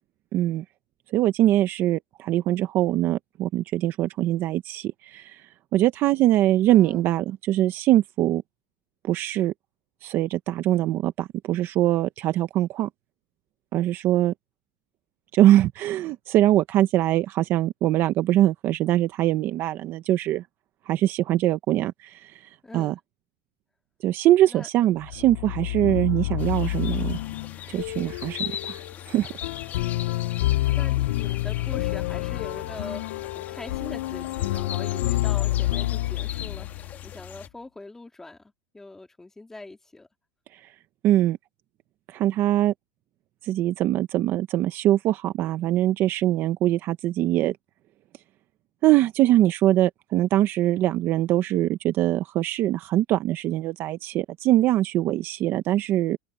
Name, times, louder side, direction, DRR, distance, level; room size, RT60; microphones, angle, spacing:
voice 1, 0.3-0.6 1.1-8.4 9.0-9.5 10.0-12.9 13.7-14.3 15.3-20.4 20.9-22.9 24.0-27.2 27.7-29.3 41.0-41.4 42.1-42.7 43.4-47.6 48.8-56.2, right 14 dB, 40° right, 0.8 m, -23 dB
voice 2, 6.7-7.0 22.6-23.0 24.4-24.7 30.6-40.1, left 2 dB, 5° left, 3.3 m, -42 dB
sound 1, 25.0-37.1, left 16 dB, 80° left, 0.5 m, -28 dB
sound 2, 26.4-37.5, left 9 dB, 30° left, 1.3 m, -40 dB
open air
supercardioid pair, 155°, 6 cm